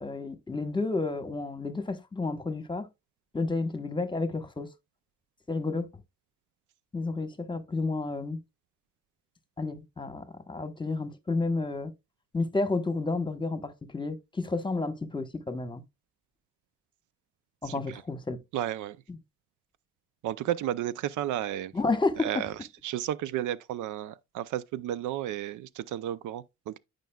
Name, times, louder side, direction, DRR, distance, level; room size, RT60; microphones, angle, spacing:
voice 1, 0.0-2.9 3.3-4.7 5.5-5.9 6.9-8.4 9.6-11.9 12.3-15.8 17.6-18.4 19.1-19.2 21.7-22.3, left 3 dB, 15° left, 1.1 m, -31 dB
voice 2, 17.6-18.0 18.5-19.0 20.2-21.7 22.2-22.5 22.8-26.8, right 12 dB, 80° right, 0.5 m, -33 dB
12.5 x 5.3 x 2.3 m
cardioid pair, 90°, 30 cm